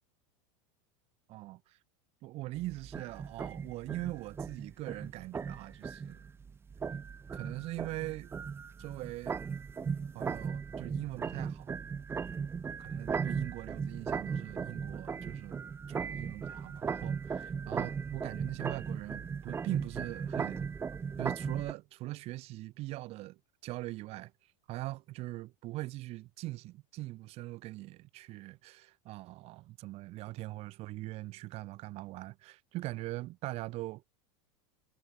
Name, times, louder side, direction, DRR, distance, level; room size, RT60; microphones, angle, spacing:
voice 1, 1.3-1.8 2.2-6.3 7.3-8.3 8.8-9.4 10.1-11.7 12.9-20.6 21.2-24.3 24.7-34.0, right 18 dB, 40° right, 4.9 m, -41 dB
sound 1, 2.6-21.7, right 6 dB, 15° right, 1.4 m, -37 dB
supercardioid pair, 150°, 16 cm